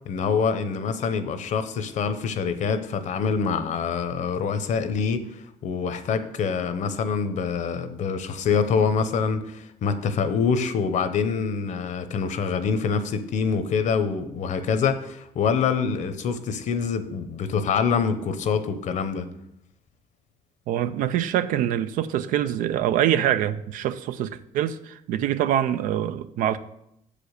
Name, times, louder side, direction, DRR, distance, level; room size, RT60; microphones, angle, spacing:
voice 1, 0.1-19.3, left 6 dB, 65° left, 0.8 m, -25 dB
voice 2, 20.7-26.6, right 11 dB, 85° right, 0.5 m, -25 dB
6.8 x 5.0 x 6.5 m
cardioid pair, 105°, 13 cm